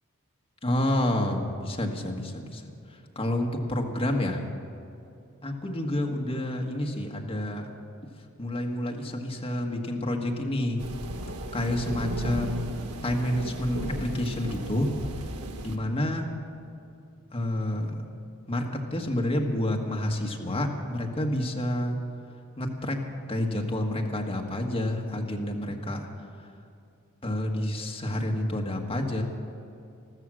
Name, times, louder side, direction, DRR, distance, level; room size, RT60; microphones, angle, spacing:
voice 1, 0.6-2.6 3.1-4.4 5.4-7.7 8.4-10.8 11.5-12.7 13.0-14.9 15.6-16.3 17.3-18.0 18.5-18.6 18.9-22.0 22.6-23.0 23.3-26.1 27.2-29.2, left 1 dB, 25° left, 1 dB, 1.5 m, -29 dB
sound 1, 10.8-15.8, right 1 dB, 85° right, 1.3 m, -36 dB
14.0 x 13.5 x 6.3 m, 2.6 s
head